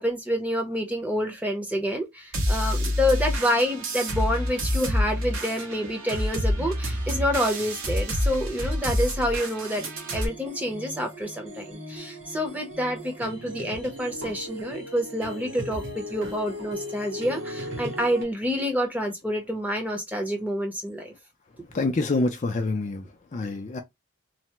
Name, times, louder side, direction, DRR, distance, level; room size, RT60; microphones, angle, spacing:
voice 1, 0.0-21.1, equal, 5° right, 0.6 m, -28 dB
sound 1, 2.3-10.3, equal, 85° right, 1.1 m, -28 dB
sound 2, 9.8-18.2, equal, 60° right, 1.1 m, -37 dB
voice 2, 21.7-23.1 23.3-23.8, left 3 dB, 35° left, 0.4 m, -26 dB
3.2 x 2.0 x 2.9 m
head